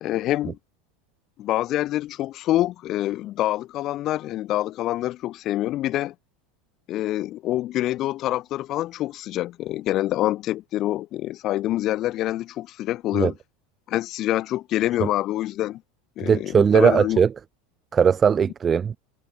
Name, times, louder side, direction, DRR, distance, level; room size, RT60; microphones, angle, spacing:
voice 1, 0.0-0.6 1.4-6.1 6.9-13.3 13.9-15.8 16.2-17.2, left 14 dB, 40° left, 1.6 m, -26 dB
voice 2, 16.2-17.3 17.9-19.0, right 7 dB, 25° right, 1.5 m, -19 dB
figure-of-eight pair, 80°, 0 cm